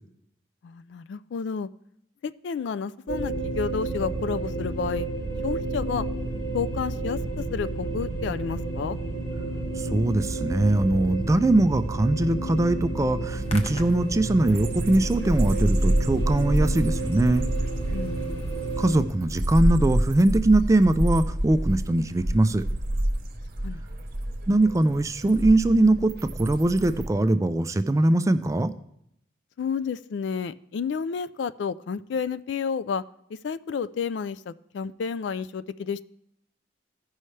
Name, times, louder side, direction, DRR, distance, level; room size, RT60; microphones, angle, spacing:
voice 1, 0.6-1.7 2.2-5.1 5.4-6.1 6.5-9.0 17.9-18.4 23.6-23.8 29.6-33.0 33.4-36.0, left 6 dB, 65° left, 15 dB, 0.3 m, -31 dB
sound 1, 3.1-19.0, right 2 dB, 90° left, 3.9 m, -31 dB
voice 2, 9.8-17.5 18.8-22.6 24.5-28.7, right 2 dB, 15° right, 11 dB, 0.3 m, -22 dB
Hands, 13.2-18.9, left 1 dB, 30° left, 0.9 m, -46 dB
sound 2, 14.5-27.1, right 1 dB, 50° right, 1.0 m, -28 dB
15.5 x 5.5 x 3.2 m, 0.75 s
head